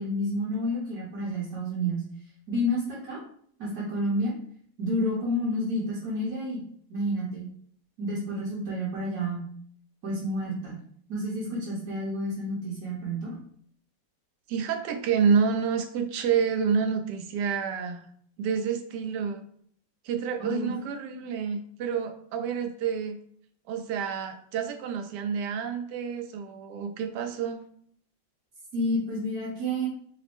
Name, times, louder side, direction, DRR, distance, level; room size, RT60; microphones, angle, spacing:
voice 1, 0.0-2.0 2.5-3.2 3.6-4.3 4.8-6.6 6.9-7.4 8.0-9.5 10.0-10.8 11.1-13.3 20.4-20.7 28.7-29.9, equal, 55° right, -7 dB, 1.3 m, -29 dB
voice 2, 14.5-18.0 18.4-19.4 20.0-23.2 23.7-27.6, right 6 dB, 75° right, 6 dB, 1.1 m, -28 dB
5.0 x 2.0 x 3.4 m, 0.63 s
omnidirectional pair, 2.0 m